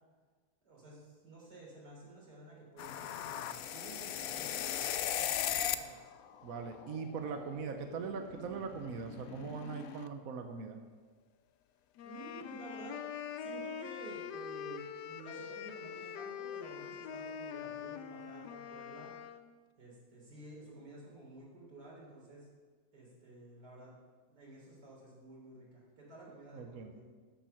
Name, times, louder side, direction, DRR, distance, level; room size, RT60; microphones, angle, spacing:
voice 1, 0.6-6.1 12.0-13.0 13.4-19.1 19.8-22.5 22.9-23.9 24.3-27.0, right 2 dB, 85° right, -4 dB, 4.2 m, -52 dB
sound 1, 2.8-6.0 6.2-10.1, left 10 dB, 70° left, 0.9 m, -39 dB
voice 2, 6.4-10.8 26.5-26.9, right 5 dB, 60° right, 6 dB, 1.1 m, -41 dB
sound 2, 12.0-19.4, left 8 dB, 85° left, 1.3 m, -44 dB
12.5 x 7.5 x 5.8 m, 1.5 s
omnidirectional pair, 1.7 m